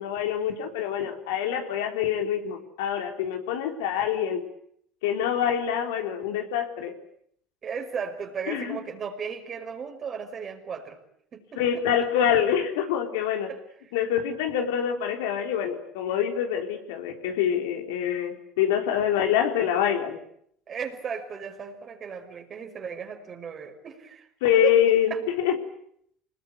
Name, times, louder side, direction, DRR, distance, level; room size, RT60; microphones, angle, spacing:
voice 1, 0.0-4.4 5.0-6.9 8.5-8.8 11.6-13.5 13.9-20.2 24.4-25.5, left 9 dB, 75° left, 4 dB, 3.8 m, -25 dB
voice 2, 7.6-11.0 11.3-11.8 13.5-13.6 20.7-24.3 24.6-25.2, right 6 dB, 40° right, 4 dB, 5.8 m, -35 dB
26.0 x 20.5 x 9.6 m, 0.69 s
hypercardioid pair, 70°, 0 cm